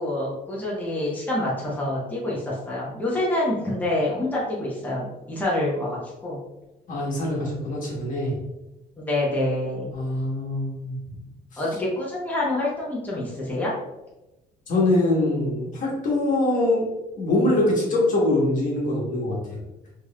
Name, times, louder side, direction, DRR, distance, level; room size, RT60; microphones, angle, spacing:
voice 1, 0.0-6.4 9.0-9.9 11.6-13.7, left 1 dB, 10° left, -6 dB, 1.1 m, -27 dB
voice 2, 6.9-8.3 9.9-11.0 14.7-16.9 17.2-19.4, left 2 dB, 50° left, -4 dB, 1.4 m, -23 dB
3.8 x 3.1 x 2.4 m, 0.99 s
cardioid pair, 110°, 17 cm